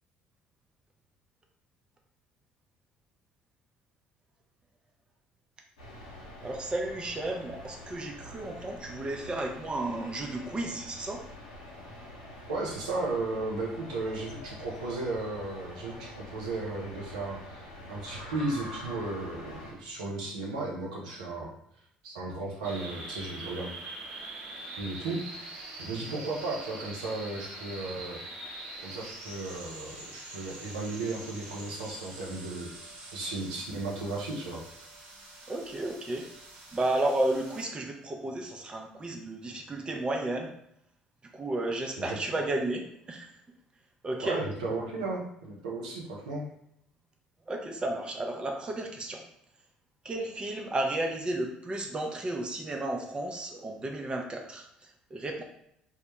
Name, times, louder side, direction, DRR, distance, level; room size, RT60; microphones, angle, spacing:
sound 1, 5.8-19.7, left 1 dB, 85° left, 0.6 m, -46 dB
voice 1, 6.4-11.2 35.5-36.3 36.7-40.5 41.3-43.3 44.0-44.4 47.5-49.2 50.0-55.4, right 2 dB, 25° right, 1 dB, 0.5 m, -33 dB
voice 2, 12.5-21.5 22.0-23.7 24.8-25.5 25.8-28.2 28.8-32.7 33.1-34.6 42.0-42.2 44.2-46.5, right 2 dB, 80° right, -3 dB, 0.5 m, -35 dB
sound 2, 22.6-37.6, right 2 dB, 55° right, 1.0 m, -44 dB
2.1 x 2.1 x 2.9 m, 0.74 s
hypercardioid pair, 60°, 4 cm